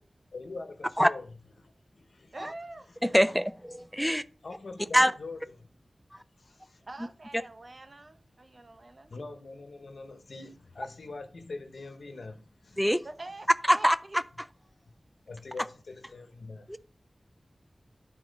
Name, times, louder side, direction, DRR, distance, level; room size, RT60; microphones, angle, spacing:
voice 1, 0.3-1.3 1.6-2.4 3.8-3.9 4.4-5.7 6.4-6.8 9.1-12.8 15.3-16.8, left 3 dB, 80° left, 1.1 m, -43 dB
voice 2, 2.3-2.9 6.9-9.1 13.0-13.5 13.7-14.2, right 2 dB, 50° right, 1.0 m, -45 dB
voice 3, 3.0-4.2 4.9-5.1 12.8-13.0 13.7-14.2 16.7-16.8, equal, ahead, 0.5 m, -24 dB
10.5 x 4.1 x 5.3 m
wide cardioid pair, 55°, 0 cm